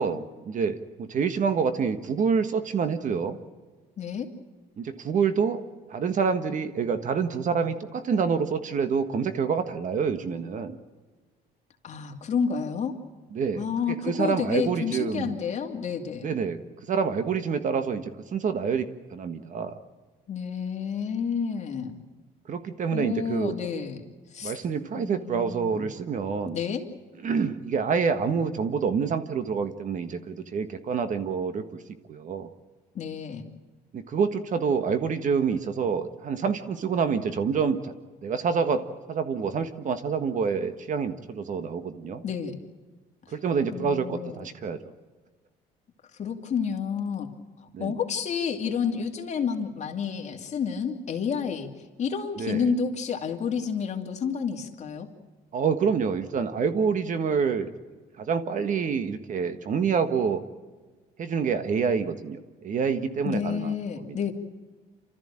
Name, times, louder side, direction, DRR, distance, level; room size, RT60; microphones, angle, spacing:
voice 1, 0.0-3.4 4.8-5.6 5.9-10.8 13.3-15.3 16.2-16.6 16.9-19.8 22.5-23.5 24.4-26.6 27.2-31.6 32.1-32.5 33.9-37.9 38.2-38.8 39.1-42.2 43.3-44.8 47.7-47.9 52.4-52.7 55.5-57.7 58.2-60.4 61.2-63.7 64.0-64.2, right 6 dB, 50° right, 10 dB, 1.6 m, -27 dB
voice 2, 4.0-4.3 11.8-13.0 13.5-16.3 20.3-22.0 22.9-24.0 24.3-24.5 25.0-25.9 26.5-26.8 32.9-33.5 42.2-42.6 43.7-44.5 46.2-47.3 47.6-55.1 63.2-64.3, left 6 dB, 40° left, 3 dB, 2.6 m, -30 dB
28.5 x 14.0 x 8.8 m, 1.3 s
cardioid pair, 110°, 17 cm